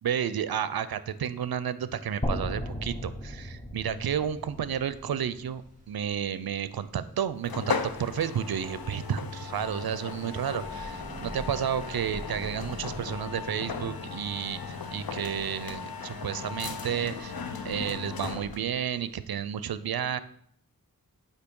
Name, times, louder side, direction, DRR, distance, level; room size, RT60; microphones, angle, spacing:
voice 1, 0.0-5.6 5.9-17.4 17.6-20.2, right 8 dB, 80° right, 14 dB, 0.5 m, -31 dB
sound 1, 2.2-6.3, equal, 15° left, 0.9 m, -36 dB
sound 2, 4.0-19.2, right 1 dB, 20° right, 2.6 m, -49 dB
sound 3, 7.4-18.7, left 5 dB, 80° left, 0.7 m, -37 dB
8.1 x 2.7 x 5.3 m, 0.65 s
wide cardioid pair, 50°, 36 cm